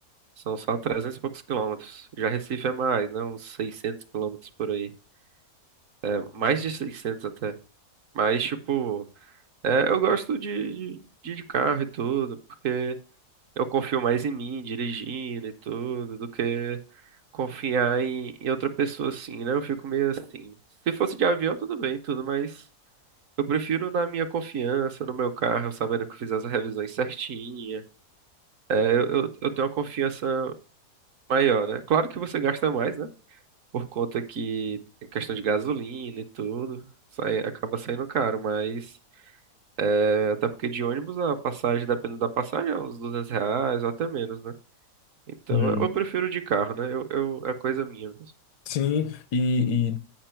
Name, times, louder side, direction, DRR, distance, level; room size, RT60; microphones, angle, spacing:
voice 1, 0.5-1.2 1.5-4.9 6.0-7.5 8.1-9.0 9.6-12.4 12.6-13.0 13.6-16.8 17.3-20.5 20.9-22.6 23.4-27.8 28.7-30.5 31.3-33.1 33.7-34.8 35.1-36.9 37.2-38.9 39.8-44.5 45.5-48.1, right 6 dB, 60° right, 1.0 m, -27 dB
voice 2, 45.5-45.9 48.7-50.0, left 6 dB, 85° left, 1.3 m, -25 dB
9.0 x 5.1 x 4.3 m
omnidirectional pair, 1.7 m